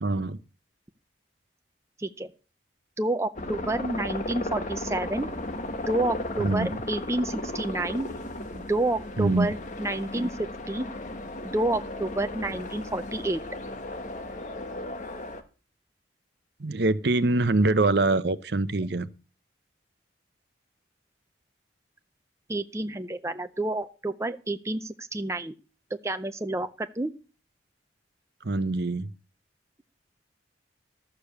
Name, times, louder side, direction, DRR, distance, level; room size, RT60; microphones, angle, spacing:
voice 1, 0.0-0.4 6.4-6.7 9.2-9.5 16.6-19.1 28.4-29.1, right 2 dB, 55° right, 0.7 m, -24 dB
voice 2, 3.0-5.3 5.9-8.1 8.5-10.9 11.4-13.4 22.5-25.5 26.0-27.1, right 2 dB, 15° right, 0.5 m, -29 dB
sound 1, 3.4-15.4, left 1 dB, 40° left, 1.3 m, -35 dB
13.0 x 6.9 x 6.8 m
head